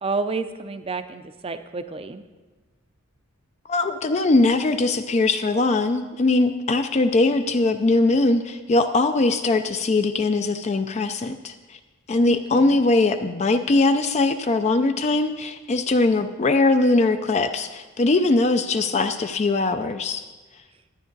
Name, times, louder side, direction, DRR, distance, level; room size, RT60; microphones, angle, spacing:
voice 1, 0.0-2.2 12.3-12.8, right 3 dB, 25° right, 10 dB, 0.5 m, -30 dB
voice 2, 3.7-11.8 12.1-20.2, left 2 dB, 30° left, 8 dB, 0.4 m, -21 dB
12.0 x 9.4 x 3.9 m, 1.3 s
head